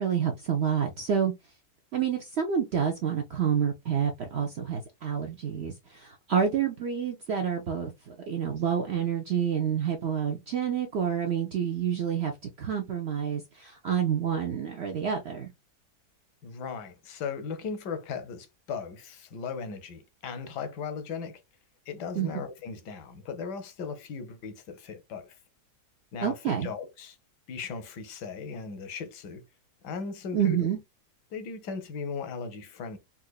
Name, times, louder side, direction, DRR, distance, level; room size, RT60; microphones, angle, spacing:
voice 1, 0.0-1.3 1.9-12.3 12.6-15.5 22.2-22.3 26.2-26.7 30.3-30.8, right 8 dB, 80° right, 0.5 m, -28 dB
voice 2, 16.4-21.4 21.9-25.4 26.1-27.2 27.5-29.4 29.8-30.7 31.3-33.0, left 5 dB, 90° left, 1.4 m, -37 dB
4.3 x 2.5 x 2.3 m
omnidirectional pair, 1.7 m